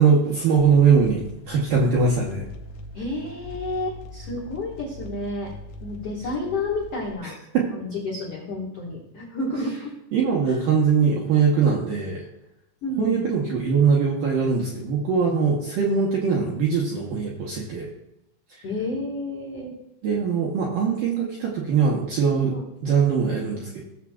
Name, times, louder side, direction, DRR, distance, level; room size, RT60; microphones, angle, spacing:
voice 1, 0.0-2.5 7.5-7.7 10.1-12.3 13.0-17.9 20.0-22.6 22.8-23.8, right 5 dB, 75° right, -3 dB, 2.0 m, -21 dB
sound 1, 0.6-7.2, left 1 dB, 90° left, 3.2 m, -41 dB
voice 2, 2.9-5.5 5.8-7.3 7.7-9.9 10.4-10.6 12.8-13.2 18.6-19.7 22.5-22.6, left 2 dB, 70° left, -4 dB, 1.4 m, -30 dB
16.5 x 7.3 x 2.3 m, 0.86 s
omnidirectional pair, 5.4 m